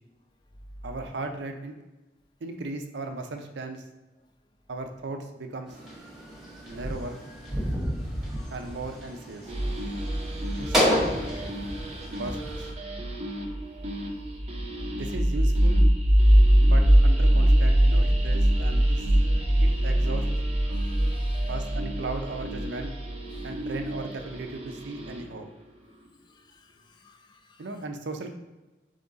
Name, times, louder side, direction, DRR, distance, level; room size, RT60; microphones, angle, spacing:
voice 1, 0.8-1.7 2.4-3.8 4.7-5.8 6.7-7.2 8.5-9.5 10.6-11.0 12.1-12.7 14.9-15.9 16.6-19.1 19.6-20.3 21.5-22.9 23.4-25.5 27.6-28.4, right 3 dB, 80° right, 5 dB, 0.6 m, -36 dB
sound 1, 5.7-12.7, equal, 5° right, 1.3 m, -31 dB
sound 2, 9.5-25.4, equal, 35° right, 0.6 m, -23 dB
voice 2, 20.7-21.7 23.3-23.5 26.3-27.7, left 4 dB, 25° left, 5 dB, 0.4 m, -55 dB
3.7 x 3.5 x 3.9 m, 1.1 s
head